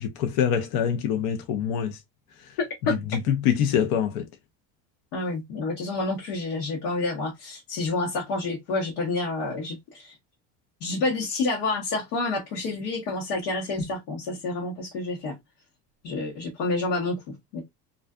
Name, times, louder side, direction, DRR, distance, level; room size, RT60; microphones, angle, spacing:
voice 1, 0.0-2.0 2.4-2.5 3.1-4.3, left 8 dB, 70° left, 0.6 m, -25 dB
voice 2, 2.6-3.0 5.1-10.2 10.8-15.4 16.0-17.6, left 3 dB, 85° left, 1.0 m, -29 dB
2.4 x 2.4 x 2.2 m
supercardioid pair, 110°, 42 cm